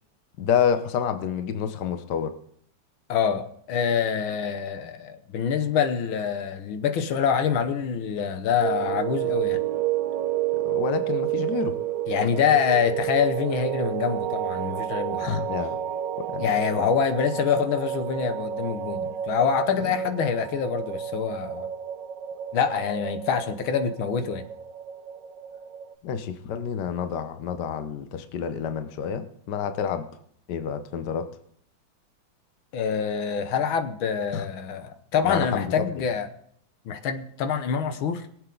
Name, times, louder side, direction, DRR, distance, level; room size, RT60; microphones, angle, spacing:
voice 1, 0.4-2.3 10.6-11.8 15.2-15.7 16.2-16.5 26.0-30.1 30.5-31.3 34.3-34.4 35.2-35.9, left 8 dB, 65° left, 1.4 m, -28 dB
voice 2, 3.1-9.6 12.1-15.3 16.4-21.7 22.5-24.4 32.7-36.3 36.9-38.3, left 7 dB, 80° left, 1.8 m, -25 dB
sound 1, 8.6-25.9, right 11 dB, 70° right, 1.3 m, -30 dB
22.5 x 8.0 x 3.9 m
omnidirectional pair, 2.2 m